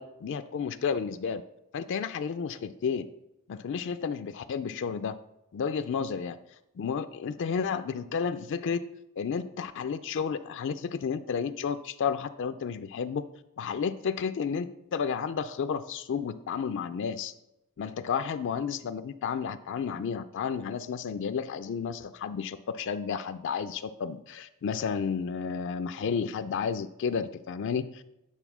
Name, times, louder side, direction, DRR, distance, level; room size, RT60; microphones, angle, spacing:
voice 1, 0.0-1.4 1.7-3.1 3.5-5.2 5.5-6.4 6.8-8.8 9.2-13.2 13.6-17.3 17.8-28.1, left 6 dB, 55° left, 11 dB, 0.4 m, -32 dB
9.0 x 4.2 x 6.0 m, 0.89 s
head